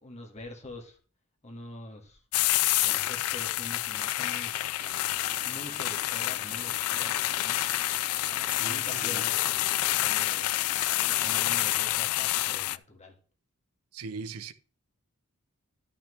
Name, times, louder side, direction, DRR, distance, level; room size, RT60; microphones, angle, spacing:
voice 1, 0.0-1.0 1.4-2.2 2.8-4.6 5.4-7.6 8.6-10.5 10.9-13.1, left 1 dB, 30° left, 1.8 m, -45 dB
sound 1, 2.3-12.8, left 16 dB, 80° left, 0.3 m, -28 dB
sound 2, 4.8-11.5, right 4 dB, 35° right, 0.8 m, -48 dB
voice 2, 8.5-9.3 13.9-14.5, right 4 dB, 80° right, 0.6 m, -40 dB
12.0 x 5.9 x 3.3 m
head